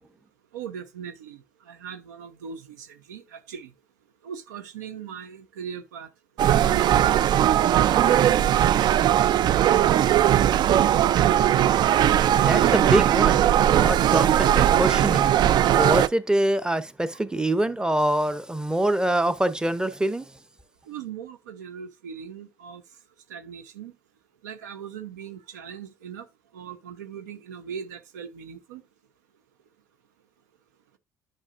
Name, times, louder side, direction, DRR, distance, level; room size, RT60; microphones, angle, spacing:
voice 1, 0.5-3.7 4.2-6.1 6.6-8.5 20.9-22.8 23.3-23.9 24.4-26.3 26.5-28.8, right 7 dB, 85° right, 0.7 m, -39 dB
sound 1, 6.4-16.1, right 11 dB, 50° right, 0.4 m, -19 dB
voice 2, 12.3-13.4 13.7-20.3, right 1 dB, 10° right, 0.8 m, -25 dB
9.8 x 5.4 x 2.5 m
hypercardioid pair, 60°, 9 cm